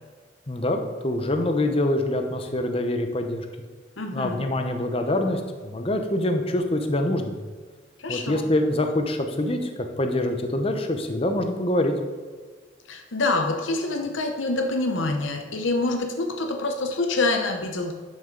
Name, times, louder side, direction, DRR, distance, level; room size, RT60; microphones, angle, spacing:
voice 1, 0.5-3.5 4.1-7.4 8.1-11.9, left 1 dB, 30° left, 5 dB, 0.8 m, -25 dB
voice 2, 4.0-4.4 8.0-8.4 12.9-17.9, left 2 dB, 85° left, 4 dB, 0.8 m, -26 dB
11.5 x 6.4 x 3.9 m, 1.5 s
head